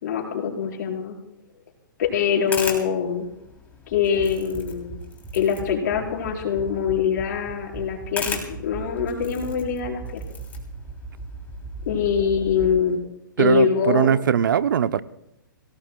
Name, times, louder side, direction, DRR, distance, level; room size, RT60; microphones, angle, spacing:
voice 1, 0.0-1.2 2.0-3.3 3.9-5.0 5.3-10.2 11.9-13.0 13.4-14.1, left 7 dB, 55° left, -1 dB, 4.6 m, -24 dB
sound 1, 2.0-13.0, left 5 dB, 15° left, 3.0 m, -39 dB
sound 2, 3.9-12.8, right 4 dB, 10° right, 3.1 m, -38 dB
voice 2, 13.4-15.0, right 8 dB, 70° right, 15 dB, 0.6 m, -20 dB
25.5 x 18.0 x 2.2 m, 0.81 s
hypercardioid pair, 130°, 11 cm